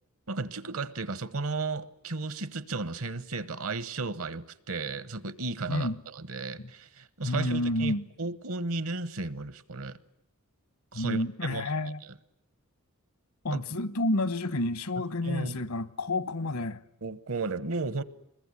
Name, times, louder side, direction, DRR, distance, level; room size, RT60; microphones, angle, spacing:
voice 1, 0.3-10.0 10.9-11.7 12.0-12.2 13.5-13.6 15.2-15.6 17.0-18.0, right 3 dB, 70° right, 1.1 m, -34 dB
voice 2, 7.2-8.0 10.9-12.0 13.4-16.8, left 2 dB, 75° left, 1.1 m, -29 dB
25.5 x 21.5 x 9.9 m
head